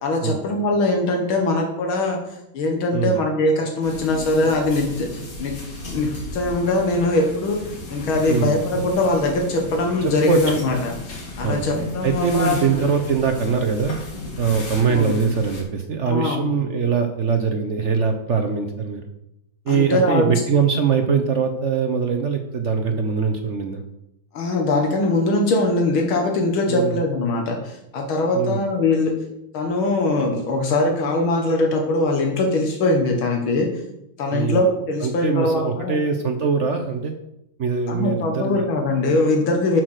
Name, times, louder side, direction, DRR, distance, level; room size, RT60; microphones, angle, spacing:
voice 1, 0.0-2.2 2.5-5.5 5.9-7.6 7.9-12.6 14.9-15.1 16.1-16.5 19.7-20.3 24.3-29.1 29.5-33.7 34.2-36.0 37.9-39.8, left 2 dB, 90° left, 2 dB, 2.3 m, -21 dB
sound 1, 3.8-15.6, left 2 dB, 70° left, 2.8 m, -34 dB
voice 2, 10.0-10.4 11.4-11.6 12.0-14.0 14.4-19.0 19.6-23.8 26.7-27.0 28.3-28.6 34.3-34.6 35.0-37.1 37.6-38.6, right 6 dB, 60° right, 6 dB, 0.8 m, -22 dB
8.2 x 6.1 x 6.5 m, 0.83 s
omnidirectional pair, 2.2 m